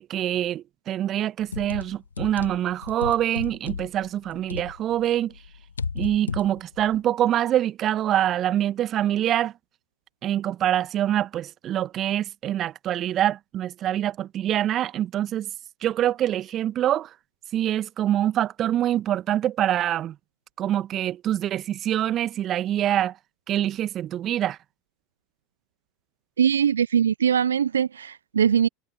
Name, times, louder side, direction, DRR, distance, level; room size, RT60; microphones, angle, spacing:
voice 1, 0.0-5.3 5.9-9.5 10.2-15.5 15.8-17.1 17.5-20.1 20.6-23.1 23.5-24.6, right 11 dB, 40° right, 1.4 m, -25 dB
sound 1, 1.4-5.0 5.3-7.0, left 5 dB, 85° left, 1.5 m, -34 dB
voice 2, 26.4-28.7, right 8 dB, 80° right, 0.4 m, -21 dB
figure-of-eight pair, 75°, 0 cm